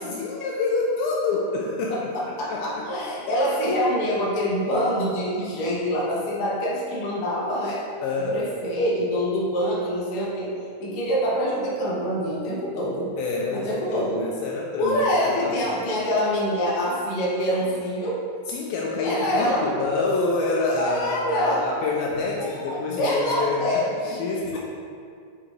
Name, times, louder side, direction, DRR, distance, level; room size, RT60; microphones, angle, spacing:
voice 1, 0.0-2.1 2.5-2.9 8.0-8.5 13.2-15.0 15.4-15.6 18.5-24.6, left 3 dB, 85° left, -2 dB, 2.1 m, -27 dB
voice 2, 1.9-7.8 8.3-10.5 10.8-13.1 13.5-14.3 14.8-18.2 19.0-19.7 20.8-21.7 22.4-24.2, equal, 65° left, -5 dB, 2.3 m, -25 dB
8.4 x 3.9 x 3.4 m, 2.3 s
omnidirectional pair, 4.5 m